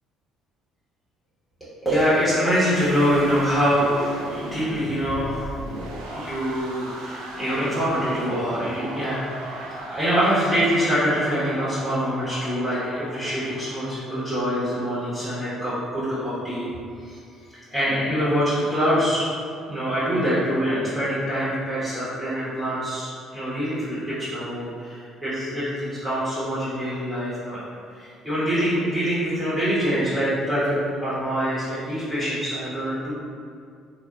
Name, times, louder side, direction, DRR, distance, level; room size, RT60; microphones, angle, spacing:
voice 1, 1.8-5.7 6.1-16.7 17.0-17.2 17.7-19.3 19.7-27.6 28.0-30.8 31.0-33.1, equal, 5° right, -12 dB, 0.9 m, -24 dB
sound 1, 2.7-14.8, right 1 dB, 80° right, 0.3 m, -37 dB
2.7 x 2.0 x 2.3 m, 2.3 s
hypercardioid pair, 55°, 0 cm